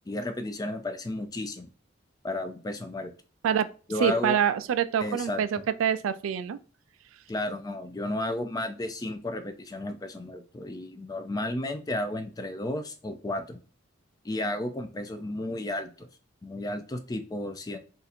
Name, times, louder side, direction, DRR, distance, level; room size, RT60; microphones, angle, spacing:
voice 1, 0.1-1.7 2.2-3.1 3.9-4.4 5.0-5.7 7.3-13.6 14.2-16.1 16.4-17.8, left 1 dB, 20° left, 0.4 m, -33 dB
voice 2, 4.0-6.6, right 8 dB, 90° right, 0.3 m, -26 dB
2.6 x 2.5 x 4.1 m
head